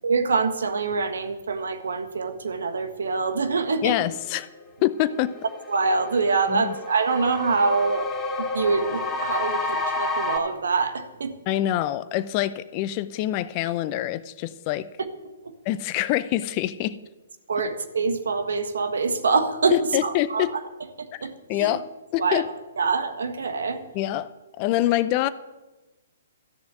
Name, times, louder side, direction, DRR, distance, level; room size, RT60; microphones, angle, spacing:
voice 1, 0.0-3.9 5.7-8.1 8.4-11.3 17.5-19.7 20.0-20.4 21.2-21.8 22.2-22.5 22.8-23.8, right 4 dB, 70° right, 1.5 m, -25 dB
voice 2, 3.8-4.5 4.8-5.3 6.5-6.7 11.5-14.9 15.7-17.0 19.7-20.5 21.5-21.8 22.1-22.5 23.9-24.3 24.6-25.3, left 14 dB, 35° left, 0.6 m, -25 dB
sound 1, 4.6-4.7 5.0-10.4, left 3 dB, 15° left, 2.4 m, -30 dB
13.0 x 7.0 x 9.0 m
figure-of-eight pair, 125°, 0 cm